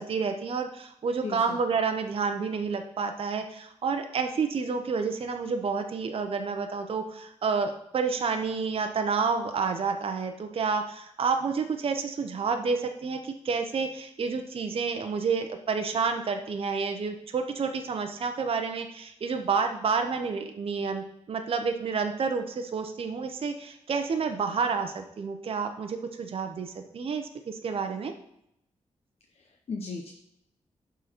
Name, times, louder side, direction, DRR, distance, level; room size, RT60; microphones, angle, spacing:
voice 1, 0.0-28.1, right 5 dB, 50° right, 5 dB, 0.7 m, -29 dB
voice 2, 1.2-1.6 29.4-30.1, left 4 dB, 55° left, 3 dB, 0.8 m, -36 dB
11.0 x 3.9 x 4.4 m, 0.78 s
wide cardioid pair, 145°, 12 cm